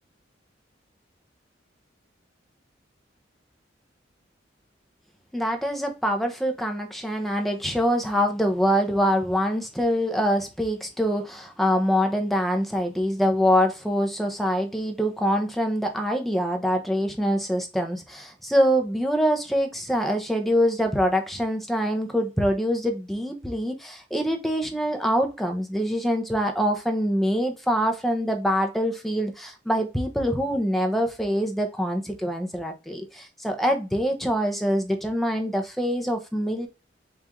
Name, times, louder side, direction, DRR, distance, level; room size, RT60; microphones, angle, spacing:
voice 1, 5.3-36.7, equal, ahead, 0.7 m, -24 dB
4.4 x 2.5 x 3.5 m
head